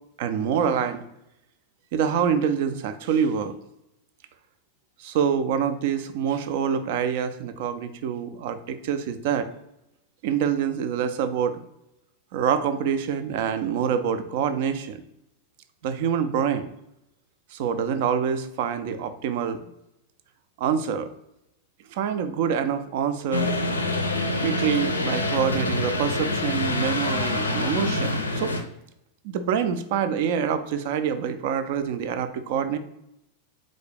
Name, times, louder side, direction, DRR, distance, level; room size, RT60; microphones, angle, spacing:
voice 1, 0.2-1.0 1.9-3.5 5.0-9.5 10.2-11.6 12.3-15.0 15.8-16.7 17.5-19.7 20.6-21.1 21.9-23.5 24.4-28.5 29.2-32.8, right 7 dB, 50° right, 10 dB, 0.3 m, -26 dB
sound 1, 23.3-28.6, left 2 dB, 80° left, 0.4 m, -26 dB
3.9 x 2.6 x 3.2 m, 0.83 s
figure-of-eight pair, 90°, 0 cm